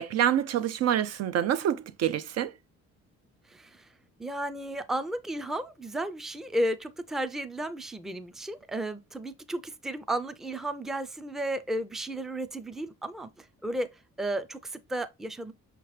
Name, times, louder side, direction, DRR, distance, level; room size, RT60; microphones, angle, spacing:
voice 1, 0.0-2.5, right 10 dB, 60° right, 0.5 m, -26 dB
voice 2, 3.5-3.9 4.2-13.9 14.2-15.5, right 1 dB, ahead, 0.4 m, -33 dB
5.7 x 3.0 x 3.1 m
cardioid pair, 90°, 30 cm